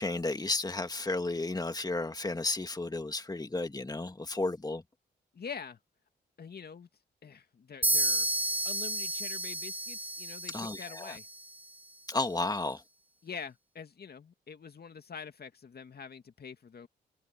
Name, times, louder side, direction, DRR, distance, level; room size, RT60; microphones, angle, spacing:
voice 1, 0.0-4.8 10.5-11.2 12.1-12.8, left 2 dB, 20° left, 2.1 m, -33 dB
voice 2, 5.3-5.8 6.4-6.9 7.2-8.3 8.6-11.3 13.2-16.9, left 6 dB, 50° left, 2.4 m, -45 dB
sound 1, 7.8-11.6, right 1 dB, 10° right, 0.4 m, -32 dB
supercardioid pair, 45°, 20 cm